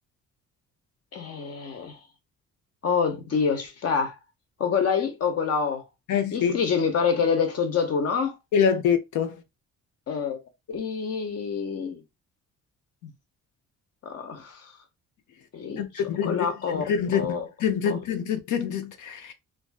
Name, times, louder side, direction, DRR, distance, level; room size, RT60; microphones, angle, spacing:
voice 1, 1.1-2.0 2.8-4.1 4.6-5.8 6.3-8.4 10.1-10.4 10.7-12.0 13.0-13.1 14.0-14.6 15.5-15.8 16.2-16.8 17.1-17.5, left 6 dB, 55° left, 0.9 m, -26 dB
voice 2, 6.1-6.6 8.5-9.4 15.8-19.3, left 7 dB, 75° left, 0.7 m, -26 dB
2.4 x 2.4 x 2.3 m
cardioid pair, 90°, 30 cm